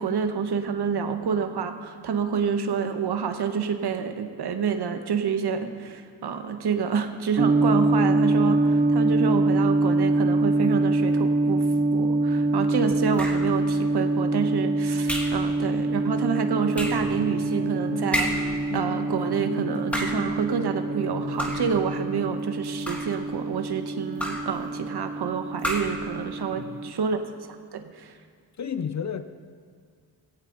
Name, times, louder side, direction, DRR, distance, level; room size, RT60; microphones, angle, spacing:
voice 1, 0.0-11.6 11.9-27.2 27.7-28.1, right 6 dB, 55° right, 7 dB, 1.2 m, -28 dB
sound 1, 7.4-26.9, right 2 dB, 20° right, 0.6 m, -25 dB
sound 2, 13.2-13.6 15.1-15.5 16.7-17.1 18.1-18.6 19.7-20.3 21.4-21.8 22.6-23.2 24.2-24.6 25.6-26.1, equal, 5° left, 1.5 m, -30 dB
sound 3, 16.7-22.2, left 3 dB, 70° left, 2.0 m, -37 dB
voice 2, 26.5-26.8 28.6-29.2, left 7 dB, 40° left, 11 dB, 0.5 m, -31 dB
17.0 x 16.5 x 3.9 m, 2.1 s
wide cardioid pair, 175°, 46 cm